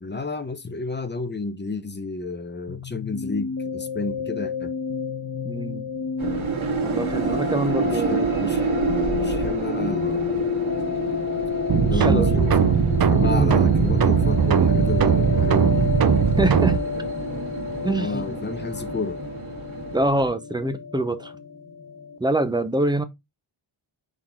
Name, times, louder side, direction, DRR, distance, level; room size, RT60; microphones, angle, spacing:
voice 1, 0.0-4.7 7.8-10.5 11.8-12.8 13.1-15.8 17.8-19.2, left 3 dB, 20° left, 0.8 m, -31 dB
sound 1, 2.7-22.2, left 6 dB, 40° left, 1.1 m, -30 dB
voice 2, 5.4-5.8 6.8-8.3 11.7-12.4 13.2-13.5 16.4-16.8 17.8-18.4 19.9-21.3 22.2-23.0, right 2 dB, 10° right, 0.6 m, -25 dB
sound 2, 6.2-20.3, right 6 dB, 75° right, 2.3 m, -30 dB
sound 3, 11.7-16.8, right 7 dB, 50° right, 0.8 m, -19 dB
6.4 x 3.9 x 4.4 m
wide cardioid pair, 150°, 48 cm